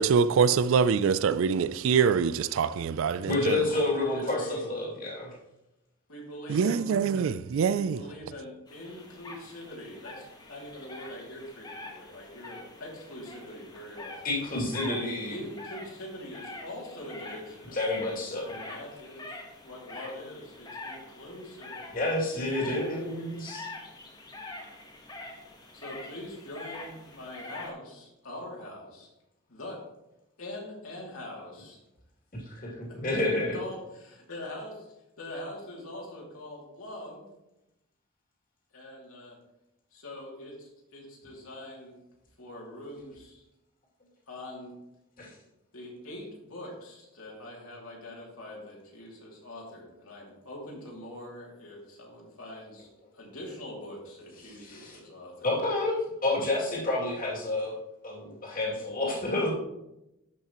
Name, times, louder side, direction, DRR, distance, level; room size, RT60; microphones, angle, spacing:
voice 1, 0.0-3.6 6.5-8.0, right 6 dB, 65° right, 0.3 m, -24 dB
voice 2, 3.2-5.3 14.2-15.4 17.7-18.5 21.9-23.7 32.3-33.6 45.2-45.3 54.4-55.0 55.4-57.7 58.0-59.5, left 2 dB, 40° left, 2.4 m, -29 dB
voice 3, 4.0-4.7 6.1-6.9 7.7-14.5 15.3-18.0 18.4-19.3 19.6-21.9 25.7-29.1 29.5-29.8 30.4-31.8 32.9-33.2 33.5-34.8 35.2-37.3 38.7-39.4 39.9-42.0 42.4-43.4 44.3-44.8 45.7-52.9 53.1-55.5, left 1 dB, 75° left, 2.5 m, -43 dB
sound 1, 8.7-27.7, left 2 dB, 20° left, 1.1 m, -45 dB
12.5 x 5.7 x 3.0 m
head